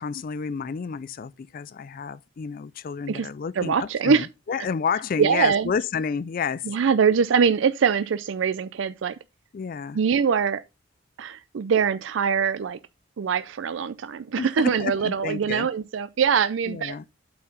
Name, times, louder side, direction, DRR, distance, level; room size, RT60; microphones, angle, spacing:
voice 1, 0.0-6.7 9.5-10.0 14.4-15.7 16.7-17.0, left 6 dB, 45° left, 0.3 m, -30 dB
voice 2, 3.6-4.3 5.2-5.7 6.7-9.2 9.9-10.6 11.2-12.8 13.2-17.0, right 6 dB, 70° right, 0.4 m, -23 dB
8.5 x 4.5 x 5.4 m
head